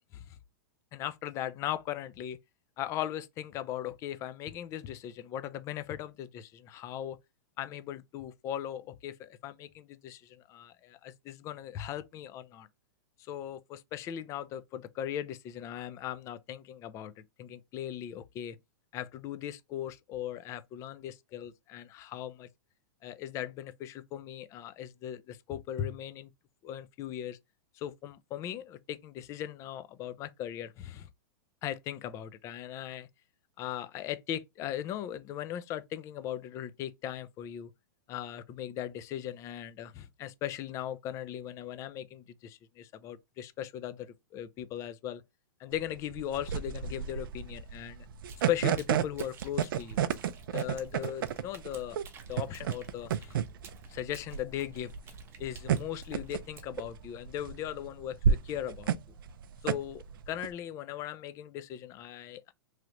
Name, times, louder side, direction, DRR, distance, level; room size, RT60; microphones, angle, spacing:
voice 1, 0.9-2.4 2.8-7.2 7.6-12.7 13.2-18.6 18.9-22.5 23.0-26.3 26.6-27.4 27.7-31.1 31.6-33.1 33.6-37.7 38.1-45.2 45.6-48.1 48.5-50.1 50.5-52.0 52.3-53.4 53.9-54.9 55.4-58.9 59.6-62.5, left 11 dB, 25° left, 0.3 m, -38 dB
sound 1, 45.7-60.5, right 8 dB, 80° right, 0.4 m, -32 dB
sound 2, 48.3-56.7, right 5 dB, 20° right, 0.6 m, -55 dB
3.1 x 2.4 x 2.9 m
hypercardioid pair, 140°, 11 cm